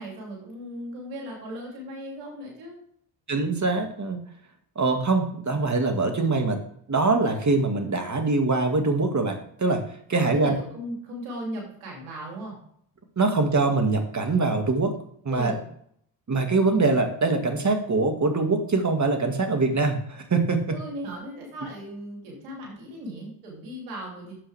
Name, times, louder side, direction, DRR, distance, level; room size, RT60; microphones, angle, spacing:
voice 1, 0.0-2.8 10.1-12.6 15.3-15.6 20.7-24.3, right 1 dB, 90° right, -2 dB, 3.2 m, -37 dB
voice 2, 3.3-4.2 4.8-6.6 6.9-9.8 10.1-10.6 13.2-14.9 15.2-15.5 16.3-20.8, right 3 dB, 35° right, 5 dB, 2.2 m, -23 dB
9.7 x 7.5 x 3.5 m, 0.66 s
hypercardioid pair, 45°, 47 cm